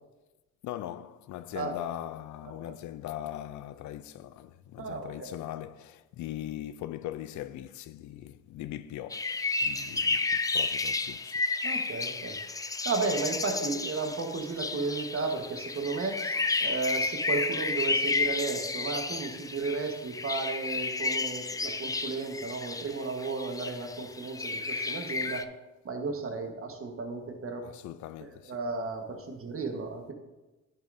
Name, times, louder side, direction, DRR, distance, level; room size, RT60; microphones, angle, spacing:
voice 1, 0.6-9.3 9.6-11.4 27.6-28.6, left 13 dB, 75° left, 0.5 m, -40 dB
voice 2, 2.4-2.8 4.8-5.3 11.6-12.4 12.8-25.4 25.8-27.7 28.2-30.1, right 3 dB, 45° right, 1.4 m, -34 dB
sound 1, 9.1-25.4, left 3 dB, 10° left, 0.3 m, -32 dB
11.0 x 6.8 x 2.6 m
cardioid pair, 90°, 30 cm